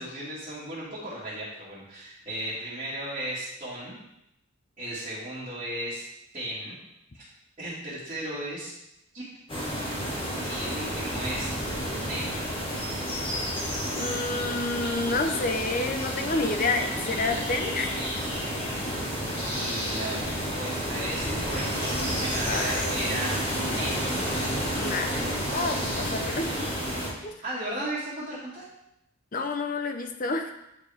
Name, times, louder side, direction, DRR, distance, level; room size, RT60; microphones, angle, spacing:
voice 1, 0.0-4.0 4.8-6.1 6.3-6.8 7.6-8.7 9.1-9.2 10.4-11.5 11.9-12.4 19.5-24.1 27.4-28.6, right 1 dB, 30° right, -13 dB, 2.1 m, -35 dB
sound 1, 9.5-27.1, equal, 25° left, 1.8 m, -30 dB
voice 2, 13.9-18.1 22.5-23.0 24.7-26.7 27.2-27.3 29.3-30.5, left 3 dB, 40° left, 6 dB, 0.6 m, -29 dB
8.7 x 4.8 x 3.5 m, 0.84 s
head